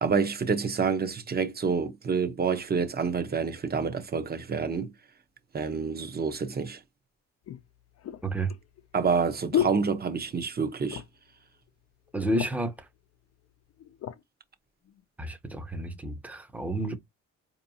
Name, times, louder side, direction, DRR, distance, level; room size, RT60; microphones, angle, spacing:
voice 1, 0.0-4.9 5.5-6.8 8.9-11.0, right 5 dB, 30° right, 0.9 m, -28 dB
sound 1, 6.5-6.6 7.4-10.6 10.8-11.3 11.7-11.8 12.1-12.8 13.5-14.2 14.8-15.0, left 10 dB, 55° left, 0.6 m, -34 dB
voice 2, 12.1-12.7 15.2-16.9, right 1 dB, 5° right, 0.8 m, -30 dB
4.4 x 2.8 x 2.7 m
cardioid pair, 90°, 30 cm